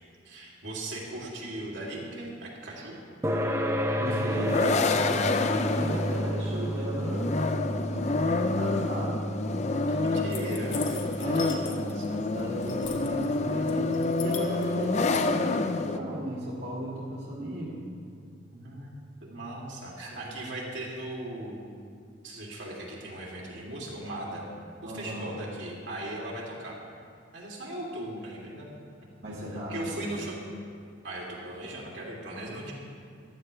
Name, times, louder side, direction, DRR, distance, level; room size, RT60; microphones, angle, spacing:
voice 1, 0.2-3.0 10.0-10.9 11.2-12.2 18.5-18.9 19.2-21.6 22.2-24.4 24.8-26.7 27.3-29.1 29.7-30.4 31.0-32.7, right 1 dB, 75° right, -4 dB, 2.9 m, -38 dB
sound 1, 3.2-18.1, right 1 dB, 15° right, 0.6 m, -34 dB
voice 2, 4.0-7.3 7.8-9.3 9.7-10.3 11.2-11.6 12.1-17.8 24.8-25.4 29.2-30.0, right 1 dB, 60° right, -6 dB, 2.1 m, -36 dB
sound 2, 4.1-16.0, left 3 dB, 35° left, 0.4 m, -28 dB
sound 3, 10.3-12.1 12.3-13.3 13.7-15.2, left 8 dB, 80° left, 1.4 m, -41 dB
14.5 x 12.5 x 3.4 m, 2.4 s
head